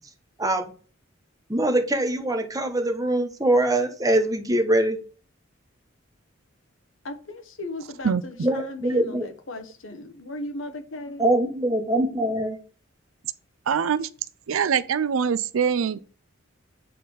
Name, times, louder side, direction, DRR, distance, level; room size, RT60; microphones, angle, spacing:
voice 1, 0.4-0.7 1.5-5.0 8.4-9.3 11.2-12.6, right 1 dB, 15° right, 1.1 m, -23 dB
voice 2, 7.0-11.3, left 2 dB, 75° left, 1.2 m, -37 dB
voice 3, 13.7-14.1 14.5-16.0, right 7 dB, 85° right, 0.5 m, -23 dB
8.4 x 4.1 x 5.0 m
head